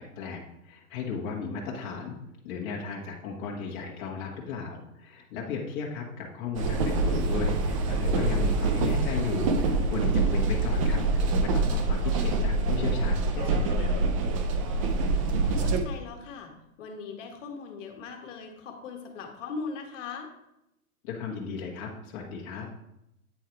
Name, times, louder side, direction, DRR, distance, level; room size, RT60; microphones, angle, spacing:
voice 1, 0.2-2.2 2.4-14.1 21.0-22.7, left 5 dB, 35° left, -2 dB, 1.4 m, -35 dB
sound 1, 6.5-15.8, right 3 dB, 25° right, 0.4 m, -25 dB
voice 2, 14.8-16.5 16.8-20.3, left 5 dB, 55° left, 3 dB, 1.6 m, -40 dB
8.6 x 4.5 x 4.5 m, 0.83 s
hypercardioid pair, 145°, 44 cm